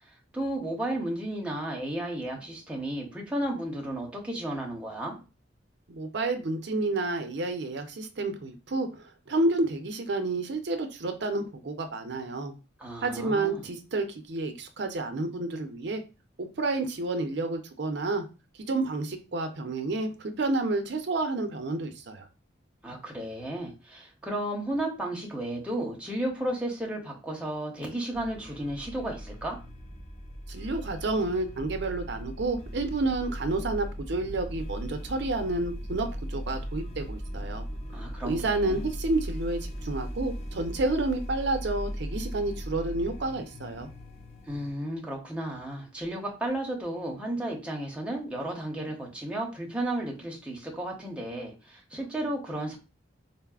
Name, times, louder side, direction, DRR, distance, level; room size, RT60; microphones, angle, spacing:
voice 1, 0.3-5.1 12.8-13.6 22.8-29.6 37.9-38.9 44.5-52.8, right 1 dB, 5° right, 0.7 m, -33 dB
voice 2, 5.9-12.5 13.0-16.0 16.4-18.2 18.6-22.3 30.5-37.7 38.2-43.9, right 2 dB, 65° right, 0.5 m, -30 dB
sound 1, 28.1-44.7, equal, 35° left, 0.5 m, -38 dB
3.9 x 2.0 x 2.3 m
head